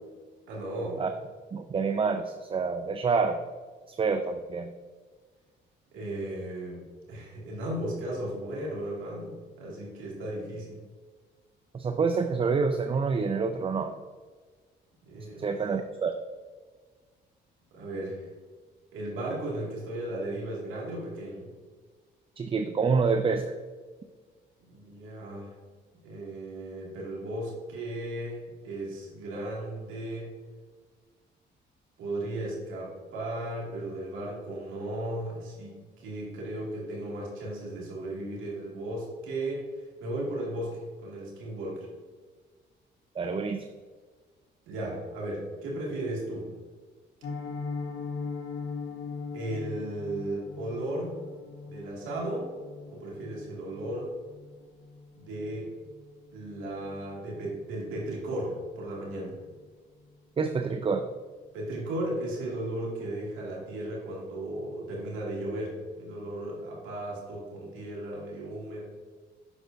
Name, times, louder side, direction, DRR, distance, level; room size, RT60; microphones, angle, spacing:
voice 1, 0.5-1.0 5.9-10.8 15.1-15.5 17.7-18.3 18.9-21.5 24.7-25.5 26.0-30.3 32.0-39.6 40.0-41.9 44.7-46.5 49.3-51.1 51.7-52.5 52.9-54.1 55.2-55.7 56.3-59.4 61.5-68.8, right 1 dB, 90° right, -4 dB, 2.1 m, -35 dB
voice 2, 1.5-3.4 3.9-4.7 11.7-14.0 15.4-16.1 22.4-23.5 43.2-43.7 60.4-61.1, right 5 dB, 25° right, 7 dB, 0.4 m, -27 dB
Piano, 47.2-58.1 58.4-58.6 58.9-59.1 59.4-59.7 60.0-60.1, left 4 dB, 75° left, 1.0 m, -41 dB
8.0 x 6.4 x 2.6 m, 1.5 s
cardioid pair, 90°, 20 cm